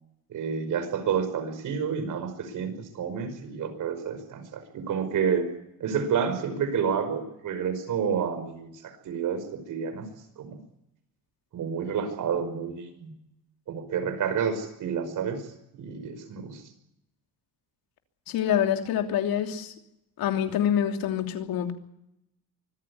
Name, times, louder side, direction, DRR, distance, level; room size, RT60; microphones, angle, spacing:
voice 1, 0.3-5.5 5.8-10.1 10.4-10.6 11.5-13.1 13.7-15.4 15.8-16.6, right 7 dB, 60° right, 9 dB, 5.5 m, -29 dB
voice 2, 18.3-19.7 20.2-21.7, left 9 dB, 75° left, 5 dB, 3.1 m, -26 dB
25.0 x 15.0 x 9.7 m, 0.84 s
cardioid pair, 130°, 35 cm